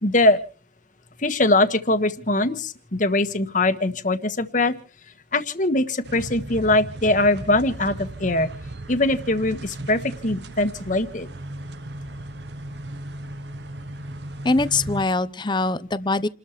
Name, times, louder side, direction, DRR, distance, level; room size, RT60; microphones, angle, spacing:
voice 1, 0.0-0.4 1.2-4.7 5.3-8.5 8.9-11.3, left 2 dB, 45° left, 1.6 m, -22 dB
sound 1, 6.0-15.1, right 1 dB, 65° right, 1.0 m, -36 dB
voice 2, 14.4-16.3, left 3 dB, 25° left, 0.7 m, -22 dB
29.5 x 13.0 x 3.2 m
head